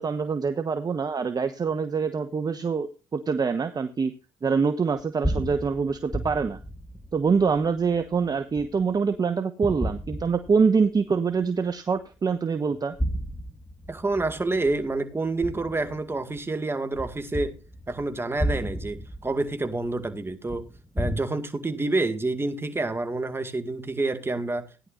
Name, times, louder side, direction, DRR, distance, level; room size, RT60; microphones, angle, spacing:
voice 1, 0.0-4.1 4.4-6.6 7.1-13.0, right 5 dB, 35° right, 1.1 m, -25 dB
sound 1, 5.0-9.1 9.6-11.0 11.4-11.5 12.7-16.4 16.9-21.2, equal, 10° left, 1.8 m, -33 dB
voice 2, 13.9-17.6 17.9-20.7 20.9-24.7, right 2 dB, 20° right, 2.1 m, -28 dB
17.0 x 10.5 x 2.6 m
supercardioid pair, 60°, 11 cm